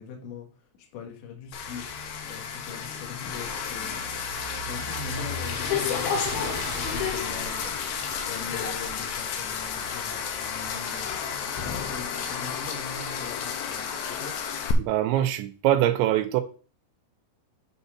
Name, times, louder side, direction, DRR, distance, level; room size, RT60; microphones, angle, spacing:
voice 1, 0.0-4.2 4.6-8.0 8.2-11.2 11.5-14.4, left 6 dB, 70° left, 3.3 m, -42 dB
sound 1, 1.5-14.7, left 7 dB, 85° left, 2.1 m, -32 dB
sound 2, 1.5-13.7, left 1 dB, 40° left, 0.7 m, -40 dB
voice 2, 14.8-16.4, right 13 dB, 85° right, 2.6 m, -23 dB
9.1 x 4.1 x 5.6 m
omnidirectional pair, 6.0 m